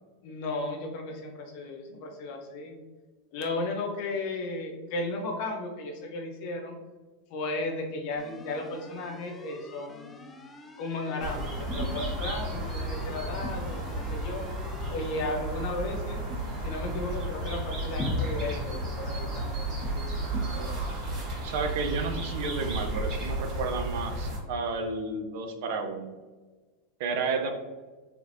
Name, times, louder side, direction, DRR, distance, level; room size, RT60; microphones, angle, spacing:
voice 1, 0.2-2.8 3.3-6.8 7.3-10.4 10.8-14.4 14.9-16.2 16.6-20.2 20.5-20.9, left 2 dB, 60° left, 2 dB, 0.8 m, -35 dB
sound 1, 8.2-14.9, left 2 dB, 20° left, 0.4 m, -48 dB
sound 2, 11.2-24.4, right 1 dB, 45° right, 1.4 m, -33 dB
sound 3, 18.0-22.0, left 3 dB, 40° left, 1.1 m, -38 dB
voice 2, 21.4-26.1 27.0-27.5, right 4 dB, 65° right, 5 dB, 0.6 m, -32 dB
3.3 x 3.2 x 2.6 m, 1.3 s
hypercardioid pair, 95°, 0 cm